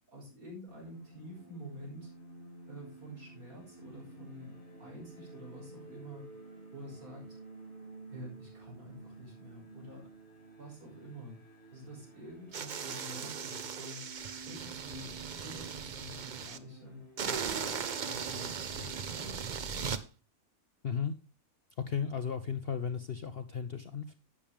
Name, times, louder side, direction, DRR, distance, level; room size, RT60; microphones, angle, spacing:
voice 1, 0.1-2.1 2.7-6.3 6.7-7.4 8.1-10.1 10.6-11.4 11.7-14.1 14.4-19.6, equal, 65° right, -2 dB, 6.0 m, -48 dB
sound 1, 0.7-19.9, right 2 dB, 15° left, 7.2 m, -52 dB
sound 2, 12.5-16.6 17.2-20.0, right 6 dB, 50° right, 0.6 m, -38 dB
voice 2, 20.8-21.1 21.9-24.2, left 7 dB, 55° left, 10 dB, 0.7 m, -35 dB
11.5 x 8.7 x 3.5 m, 0.30 s
omnidirectional pair, 1.6 m